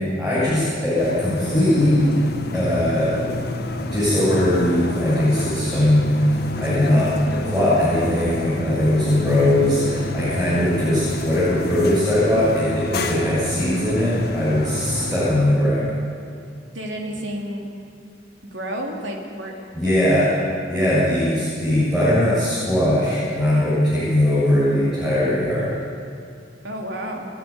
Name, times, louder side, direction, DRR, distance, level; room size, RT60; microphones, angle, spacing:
voice 1, 0.0-2.0 2.5-3.3 3.8-7.1 7.4-15.9 19.7-20.3 20.7-25.7, left 1 dB, 5° right, -12 dB, 7.7 m, -20 dB
sound 1, 1.0-15.2, left 1 dB, 60° left, 1.6 m, -29 dB
voice 2, 16.7-17.7 18.5-19.5 26.6-27.3, right 1 dB, 85° right, 1 dB, 3.4 m, -30 dB
29.5 x 9.8 x 10.0 m, 2.4 s
head